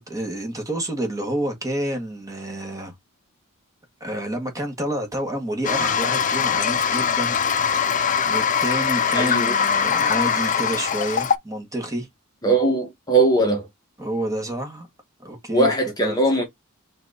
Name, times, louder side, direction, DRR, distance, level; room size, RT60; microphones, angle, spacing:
voice 1, 0.0-2.9 4.0-7.4 8.2-12.1 14.0-14.9 15.2-15.7 16.0-16.2, right 1 dB, 15° right, 1.6 m, -29 dB
Toilet flush, 5.6-11.4, left 7 dB, 35° left, 0.5 m, -22 dB
voice 2, 9.1-9.7 12.4-13.7 15.5-16.5, right 2 dB, 20° left, 1.0 m, -20 dB
5.8 x 2.9 x 2.8 m
head